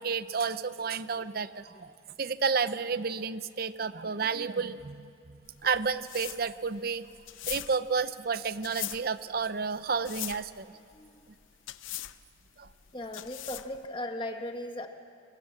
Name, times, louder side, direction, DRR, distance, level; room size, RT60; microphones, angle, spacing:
voice 1, 0.0-7.0 7.5-10.7 12.6-12.7, right 5 dB, 50° right, 13 dB, 0.7 m, -31 dB
sound 1, 5.4-13.9, left 14 dB, 90° left, 0.7 m, -41 dB
voice 2, 10.9-11.3 12.9-14.9, left 1 dB, 25° left, 4 dB, 1.6 m, -37 dB
27.5 x 23.0 x 7.6 m, 2.5 s
head